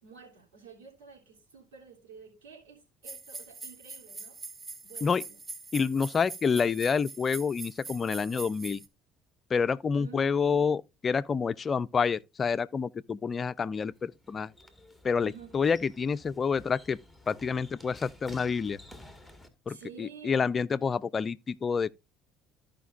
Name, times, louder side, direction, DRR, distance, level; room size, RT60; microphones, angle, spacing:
voice 1, 0.0-4.4 4.8-5.4 9.9-10.7 15.2-15.5 19.7-20.5, right 6 dB, 80° right, 3.2 m, -50 dB
sound 1, 3.0-8.9, right 4 dB, 30° right, 1.0 m, -43 dB
voice 2, 5.7-8.8 9.5-14.5 15.0-17.0 17.3-18.8 19.7-21.9, left 5 dB, 35° left, 0.4 m, -28 dB
sound 2, 13.9-19.5, left 1 dB, 5° right, 1.8 m, -52 dB
14.5 x 5.1 x 2.5 m
hypercardioid pair, 60°, 0 cm